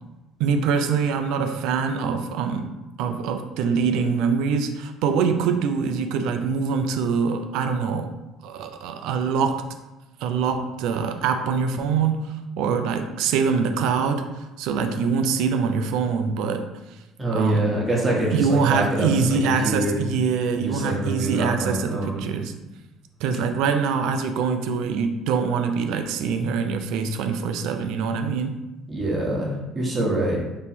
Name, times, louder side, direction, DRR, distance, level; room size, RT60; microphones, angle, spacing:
voice 1, 0.4-2.7 3.0-8.1 8.4-9.7 10.2-17.0 17.3-17.7 18.3-22.5 23.2-28.6, right 5 dB, 75° right, 7 dB, 0.4 m, -24 dB
voice 2, 17.2-20.1 20.5-22.3 28.9-30.4, right 1 dB, 20° right, -3 dB, 1.2 m, -25 dB
3.6 x 3.0 x 4.3 m, 1.0 s
cardioid pair, 135°, 0 cm